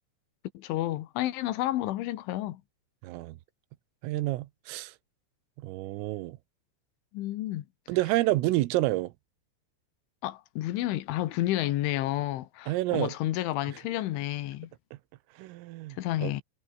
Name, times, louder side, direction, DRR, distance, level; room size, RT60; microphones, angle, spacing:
voice 1, 0.6-2.6 7.1-7.7 10.2-14.7 16.0-16.4, left 15 dB, 75° left, 3.6 m, -30 dB
voice 2, 3.0-3.4 4.0-4.9 5.6-6.4 7.9-9.1 12.7-13.1 15.4-16.3, right 18 dB, 85° right, 3.7 m, -29 dB
omnidirectional pair, 5.9 m